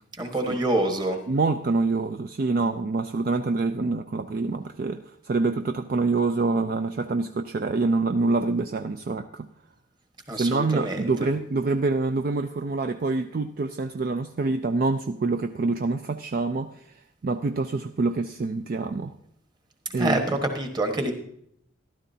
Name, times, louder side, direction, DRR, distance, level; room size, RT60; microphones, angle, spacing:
voice 1, 0.2-1.2 10.3-11.0 20.0-21.1, right 1 dB, 20° right, 5 dB, 1.3 m, -26 dB
voice 2, 1.3-9.5 10.3-19.2 19.9-20.2, right 3 dB, 45° right, 8 dB, 0.4 m, -26 dB
13.5 x 12.0 x 2.8 m, 0.70 s
head